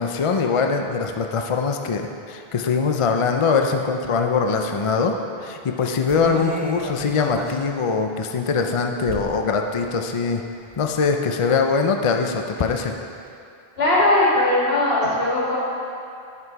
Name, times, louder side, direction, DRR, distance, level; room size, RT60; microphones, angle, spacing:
voice 1, 0.0-10.4 10.8-12.9, left 5 dB, 45° left, 4 dB, 0.5 m, -22 dB
sound 1, 6.1-7.7 8.1-8.2 9.1-9.5 9.8-9.9 10.4-10.9 11.4-11.5, right 2 dB, 20° right, 0.6 m, -33 dB
voice 2, 13.8-15.6, left 2 dB, 75° left, -8 dB, 2.5 m, -19 dB
11.0 x 6.0 x 4.6 m, 2.5 s
omnidirectional pair, 1.1 m